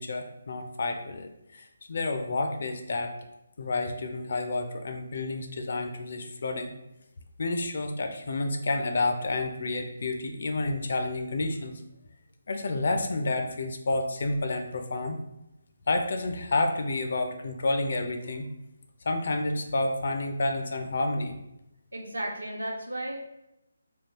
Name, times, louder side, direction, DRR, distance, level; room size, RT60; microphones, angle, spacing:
voice 1, 0.0-3.2 3.6-6.7 7.4-11.8 12.5-15.2 15.9-18.5 19.0-21.3, left 2 dB, 50° left, 5 dB, 0.4 m, -30 dB
voice 2, 21.9-23.3, right 1 dB, 70° right, 0 dB, 0.8 m, -34 dB
3.5 x 2.3 x 2.9 m, 0.86 s
figure-of-eight pair, 145°, 0 cm